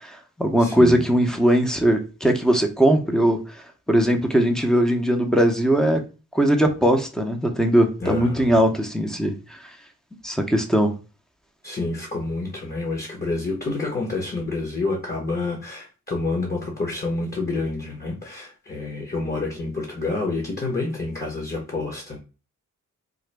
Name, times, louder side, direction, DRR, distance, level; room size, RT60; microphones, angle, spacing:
voice 1, 0.0-3.4 3.9-6.0 6.3-9.6 10.2-10.9, right 1 dB, ahead, 0.6 m, -20 dB
voice 2, 0.6-1.1 8.0-8.6 11.6-22.2, left 3 dB, 30° left, 1.0 m, -28 dB
3.8 x 2.2 x 3.3 m
wide cardioid pair, 90°, 33 cm